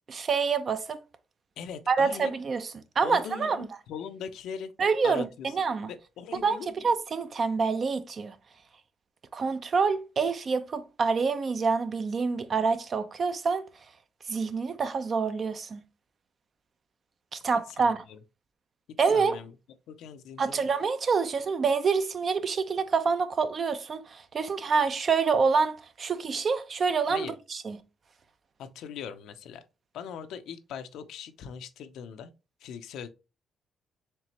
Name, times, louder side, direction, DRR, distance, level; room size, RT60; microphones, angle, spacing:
voice 1, 0.1-1.0 1.9-3.7 4.8-5.9 6.4-8.4 9.3-13.7 14.3-15.8 17.3-18.0 19.0-19.4 20.4-27.8, right 5 dB, 45° right, 0.5 m, -27 dB
voice 2, 1.6-2.3 3.0-4.7 5.0-5.5 5.9-6.7 17.8-18.2 19.1-19.5 19.9-20.6 27.1-27.3 28.6-29.6 29.9-32.3 32.6-33.1, left 7 dB, 85° left, 0.5 m, -40 dB
4.5 x 3.3 x 2.9 m
cardioid pair, 90°, 0 cm